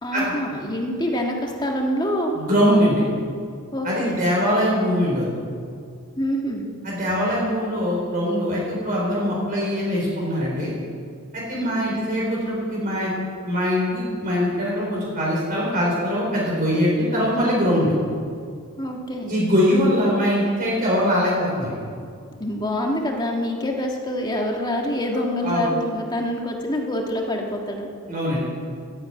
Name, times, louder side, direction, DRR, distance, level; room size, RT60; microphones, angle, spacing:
voice 1, 0.0-2.4 3.7-4.2 6.2-6.6 11.5-11.8 18.8-19.4 22.4-27.9, equal, 20° left, 1 dB, 1.7 m, -26 dB
voice 2, 2.3-3.0 3.8-5.3 6.8-10.7 11.3-13.1 13.5-17.9 19.3-21.7 25.4-25.7 28.1-28.4, equal, 40° right, -5 dB, 4.3 m, -22 dB
12.0 x 10.5 x 8.9 m, 2.2 s
head